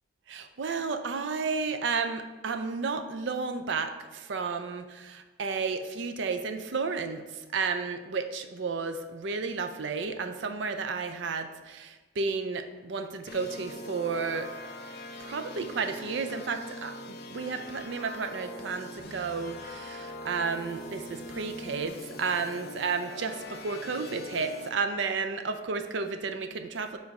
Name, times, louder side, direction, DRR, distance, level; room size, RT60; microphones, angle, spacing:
voice 1, 0.3-14.5 15.2-27.0, right 4 dB, 65° right, 8 dB, 0.5 m, -32 dB
sound 1, 13.3-24.7, left 1 dB, 50° left, 0.5 m, -42 dB
5.1 x 3.9 x 4.7 m, 1.2 s
head